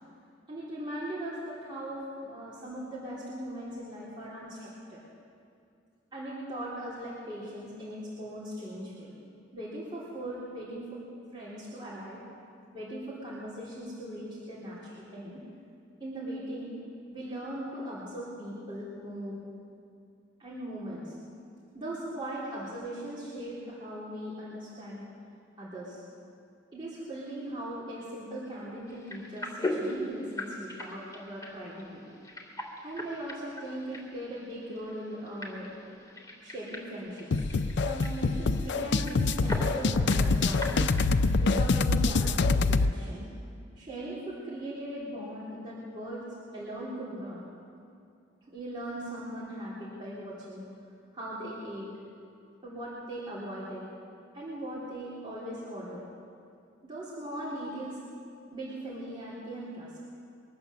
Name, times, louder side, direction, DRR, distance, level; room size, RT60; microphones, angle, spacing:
voice 1, 0.5-5.0 6.1-9.1 9.5-11.0 11.3-12.2 12.7-15.4 16.0-16.7 17.1-19.4 20.4-21.1 21.7-25.0 25.6-26.0 26.7-32.0 32.8-35.8 36.4-37.3 37.8-40.9 41.4-43.3 43.7-46.2 46.5-47.4 48.5-50.6 51.1-51.9 52.6-53.9 54.3-56.0 56.8-58.0 58.5-59.9, right 1 dB, 25° right, -9 dB, 3.2 m, -39 dB
sound 1, 28.9-41.3, left 1 dB, 20° left, 2.3 m, -40 dB
sound 2, 37.3-42.9, left 3 dB, 60° left, 0.5 m, -25 dB
23.0 x 8.8 x 6.9 m, 2.4 s
head